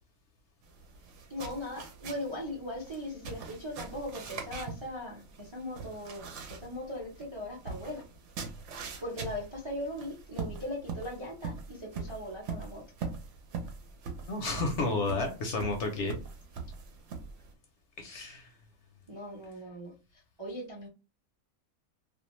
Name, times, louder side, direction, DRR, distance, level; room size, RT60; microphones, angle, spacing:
sound 1, 0.6-17.5, right 5 dB, 65° right, 0.9 m, -43 dB
voice 1, 1.3-8.0 9.0-12.8 19.1-20.9, left 1 dB, 35° right, 0.4 m, -39 dB
voice 2, 14.2-16.2 18.0-18.5, left 2 dB, 65° left, 0.8 m, -31 dB
2.5 x 2.1 x 3.0 m
omnidirectional pair, 1.5 m